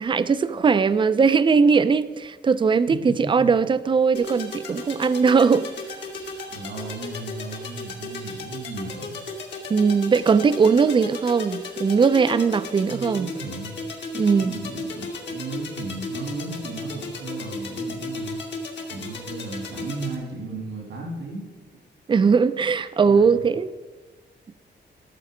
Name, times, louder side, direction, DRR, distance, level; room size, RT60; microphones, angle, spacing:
voice 1, 0.0-5.7 9.7-13.3 14.1-14.5 22.1-23.8, right 5 dB, 25° right, 0.4 m, -19 dB
voice 2, 2.9-3.5 6.5-9.2 12.8-13.8 14.4-18.4 18.9-21.5 23.0-23.5, right 3 dB, 85° right, 2.5 m, -35 dB
sound 1, 4.1-20.1, left 2 dB, 70° left, 1.9 m, -35 dB
13.0 x 7.0 x 4.9 m
wide cardioid pair, 135°, 19 cm